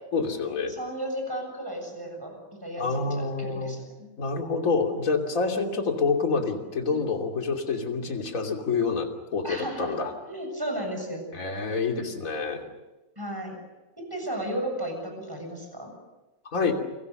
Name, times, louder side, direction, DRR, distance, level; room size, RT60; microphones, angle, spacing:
voice 1, 0.1-0.7 2.8-3.8 4.2-10.1 11.3-12.6 16.5-16.7, left 4 dB, 25° left, 2 dB, 2.9 m, -27 dB
voice 2, 0.7-4.1 9.4-9.9 10.2-11.3 13.2-13.6 14.0-16.0, right 1 dB, 5° right, 3 dB, 7.4 m, -34 dB
29.5 x 23.5 x 6.7 m, 1.1 s
omnidirectional pair, 4.0 m